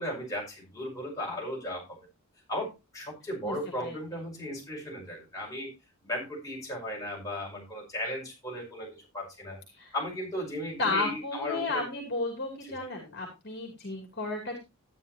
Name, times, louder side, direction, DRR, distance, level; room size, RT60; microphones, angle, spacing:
voice 1, 0.0-1.8 2.5-5.7 6.0-9.6 9.9-11.8 12.6-12.7, left 1 dB, 15° left, -4 dB, 5.8 m, -36 dB
voice 2, 3.4-3.9 9.7-9.9 10.8-14.6, left 3 dB, 45° left, 2 dB, 2.7 m, -33 dB
12.5 x 9.7 x 2.8 m, 0.24 s
head